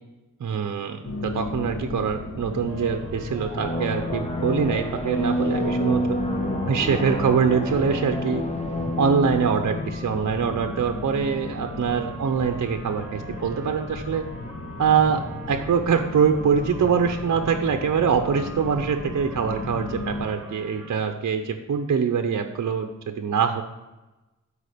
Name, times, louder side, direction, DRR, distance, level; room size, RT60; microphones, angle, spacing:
voice 1, 0.4-6.0 6.7-8.4 9.0-14.2 14.8-15.2 15.5-23.6, right 6 dB, 60° right, 5 dB, 0.8 m, -24 dB
sound 1, 1.0-20.2, left 2 dB, 50° left, 1.7 m, -36 dB
sound 2, 2.7-21.0, right 1 dB, 5° right, 3.0 m, -42 dB
sound 3, 3.5-10.9, left 1 dB, 20° left, 1.1 m, -29 dB
12.5 x 5.0 x 5.1 m, 1.1 s
wide cardioid pair, 100°, 31 cm